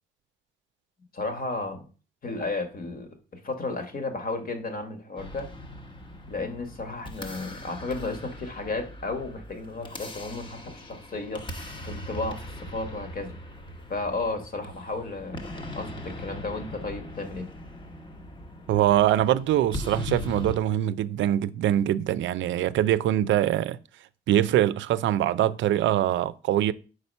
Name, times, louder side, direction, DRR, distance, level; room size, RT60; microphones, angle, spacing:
voice 1, 1.1-1.9 2.2-3.1 3.4-5.5 6.3-13.4 13.9-17.4, left 3 dB, 50° left, 1.7 m, -33 dB
sound 1, 5.2-20.6, left 1 dB, 25° left, 1.1 m, -40 dB
voice 2, 18.7-23.8 24.3-26.7, right 12 dB, 70° right, 0.4 m, -23 dB
4.9 x 4.2 x 5.5 m
cardioid pair, 90°, 20 cm